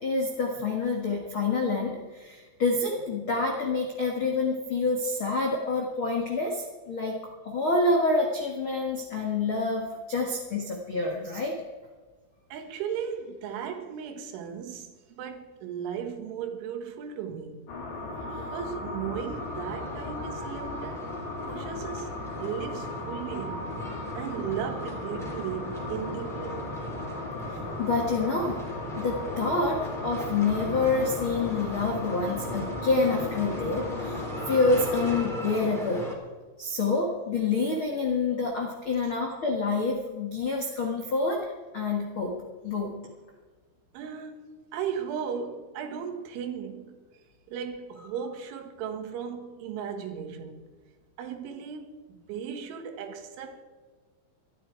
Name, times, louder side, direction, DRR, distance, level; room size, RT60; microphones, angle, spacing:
voice 1, 0.0-7.2 7.4-11.6 27.5-28.6 29.0-36.1 36.6-42.3 42.6-43.0, left 3 dB, 80° left, 1.1 m, -27 dB
voice 2, 12.5-17.7 18.3-21.1 21.5-22.1 22.4-23.7 24.2-26.8 43.9-47.0 47.5-50.7 51.2-53.6, right 7 dB, 80° right, 3.9 m, -36 dB
sound 1, 17.7-35.2, left 2 dB, 65° left, 4.9 m, -36 dB
sound 2, 19.3-36.1, equal, ahead, 3.1 m, -39 dB
20.0 x 13.0 x 4.7 m
omnidirectional pair, 5.5 m